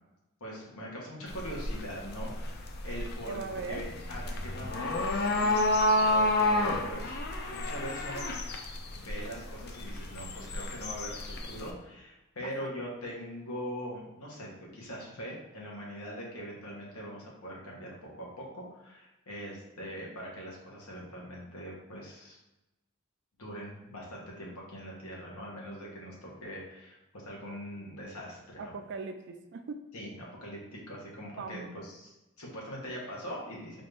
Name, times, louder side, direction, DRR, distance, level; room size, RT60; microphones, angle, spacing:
voice 1, 0.4-3.4 3.7-5.7 6.0-7.2 7.4-8.2 8.9-22.4 23.4-28.7 29.9-32.1 32.4-33.8, equal, 90° left, -3 dB, 1.2 m, -42 dB
sound 1, 1.3-11.7, left 1 dB, 45° left, 0.4 m, -30 dB
voice 2, 3.3-3.9 12.4-12.7 28.6-29.9 31.4-31.7, right 4 dB, 55° right, 7 dB, 0.3 m, -40 dB
4.1 x 2.6 x 3.3 m, 0.97 s
head